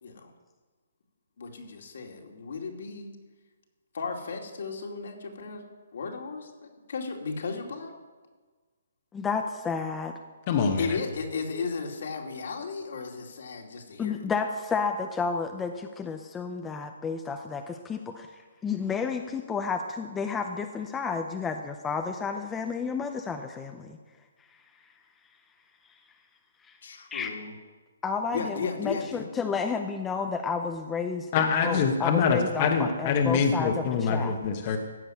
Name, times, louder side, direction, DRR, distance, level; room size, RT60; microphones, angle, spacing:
voice 1, 1.4-3.1 3.9-5.7 5.9-7.9 10.8-14.2 26.8-27.5 28.3-29.3, left 4 dB, 65° left, 2 dB, 2.6 m, -35 dB
voice 2, 9.1-10.2 14.0-24.0 26.7-26.8 27.1-27.3 28.0-31.3 31.6-34.3, left 5 dB, 10° left, 4 dB, 0.6 m, -31 dB
voice 3, 10.5-11.0 31.3-34.8, left 6 dB, 30° left, 3 dB, 1.2 m, -25 dB
15.5 x 6.5 x 9.2 m, 1.4 s
hypercardioid pair, 165°, 0 cm